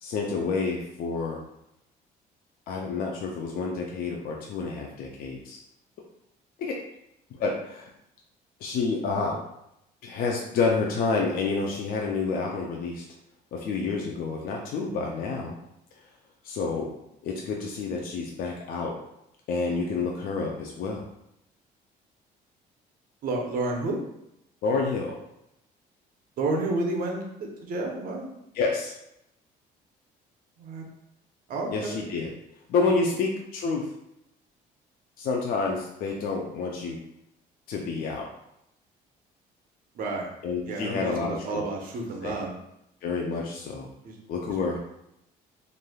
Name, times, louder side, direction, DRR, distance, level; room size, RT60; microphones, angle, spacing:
voice 1, 0.0-1.4 2.7-5.6 6.6-6.8 7.3-7.9 8.6-9.4 10.0-13.0 13.5-15.6 16.4-16.9 17.2-19.0 19.5-21.0 24.6-25.2 28.5-28.9 31.7-32.3 32.7-33.9 35.2-37.0 37.7-38.3 40.4-41.6 42.2-42.4 43.0-43.9 44.3-44.8, left 4 dB, 60° left, -1 dB, 0.4 m, -29 dB
voice 2, 23.2-24.0 26.4-27.3 27.6-28.3 30.6-30.8 31.5-32.0 39.9-40.3 40.7-42.5 43.4-43.5 44.0-44.1 44.5-44.8, right 2 dB, 60° right, 0 dB, 0.7 m, -30 dB
3.1 x 2.5 x 2.2 m, 0.80 s
cardioid pair, 110°, 17 cm